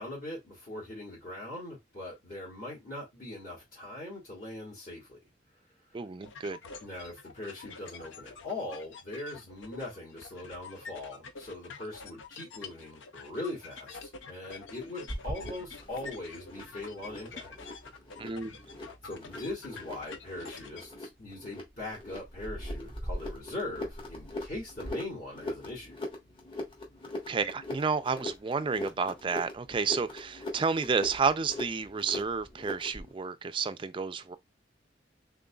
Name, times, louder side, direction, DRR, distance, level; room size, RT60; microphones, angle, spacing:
voice 1, 0.0-5.2 6.8-17.5 19.0-26.0, left 2 dB, 50° left, 1.7 m, -41 dB
voice 2, 5.9-6.6 18.2-18.5 27.3-34.4, right 5 dB, 25° right, 0.4 m, -31 dB
sound 1, 6.2-20.9, left 5 dB, 85° left, 0.6 m, -47 dB
sound 2, 15.1-33.1, left 1 dB, 30° left, 1.2 m, -41 dB
3.8 x 3.6 x 2.3 m
head